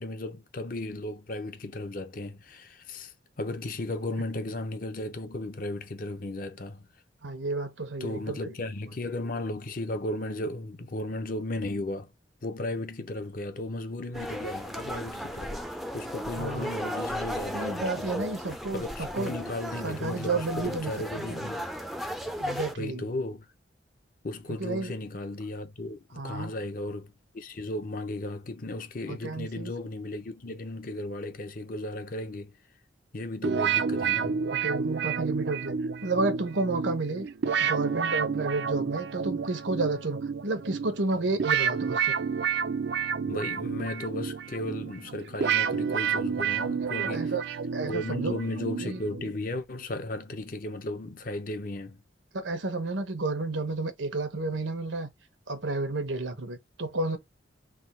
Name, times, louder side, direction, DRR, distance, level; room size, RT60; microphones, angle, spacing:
voice 1, 0.0-6.9 8.0-12.1 12.4-18.3 18.7-21.7 22.8-23.5 24.2-32.5 33.1-34.4 43.3-47.4 47.9-52.0, left 1 dB, 50° left, 0.7 m, -35 dB
voice 2, 7.2-8.4 16.4-16.7 17.5-19.3 19.8-21.5 22.4-23.1 24.6-24.9 26.2-26.5 29.1-29.7 34.4-35.7 36.0-37.3 37.6-42.2 46.8-47.4 47.7-48.4 48.8-49.0 52.3-55.1 55.5-57.2, right 3 dB, 85° right, 1.0 m, -31 dB
sound 1, 14.1-22.7, equal, ahead, 0.4 m, -35 dB
sound 2, 33.4-49.4, right 6 dB, 65° right, 0.4 m, -30 dB
3.5 x 2.3 x 4.2 m
head